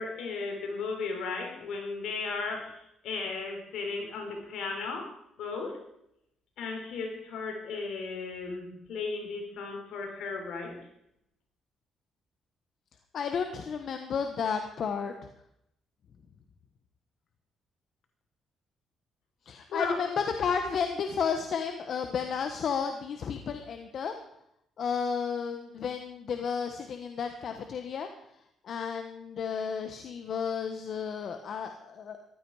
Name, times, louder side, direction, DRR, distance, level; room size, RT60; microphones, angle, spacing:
voice 1, 0.0-5.1 5.4-5.8 6.6-10.8 19.7-20.0, left 4 dB, 80° left, 2 dB, 3.9 m, -35 dB
voice 2, 13.1-15.1 19.5-24.1 24.8-28.1 28.6-32.2, left 6 dB, 60° left, 6 dB, 1.2 m, -32 dB
15.0 x 12.5 x 4.8 m, 0.79 s
cardioid pair, 90°, 0 cm